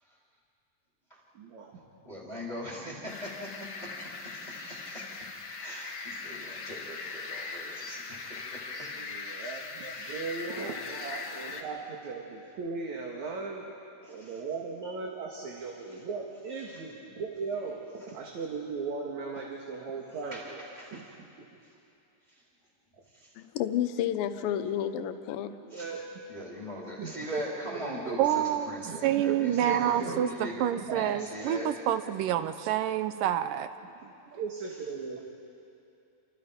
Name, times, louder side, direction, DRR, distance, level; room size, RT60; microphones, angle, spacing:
voice 1, 1.3-1.8 8.9-13.6 14.1-20.7 20.9-21.1 21.4-21.5 22.9-23.0 25.5-26.3 26.8-28.2 28.8-31.3 33.8-35.3, right 4 dB, 55° right, -1 dB, 3.0 m, -38 dB
voice 2, 2.0-3.5 3.8-5.1 5.5-8.9 9.3-9.4 9.8-10.2 14.0-14.4 14.8-14.9 20.3-21.1 22.3-22.4 23.0-23.3 25.7-25.9 26.3-31.7, equal, 10° left, -5 dB, 3.2 m, -41 dB
sound 1, 3.1-11.6, left 4 dB, 50° left, 1.2 m, -40 dB
voice 3, 23.4-25.5, left 10 dB, 75° left, 9 dB, 2.6 m, -30 dB
voice 4, 28.2-33.7, right 11 dB, 75° right, 11 dB, 2.2 m, -28 dB
29.0 x 27.5 x 5.2 m, 2.7 s
omnidirectional pair, 4.2 m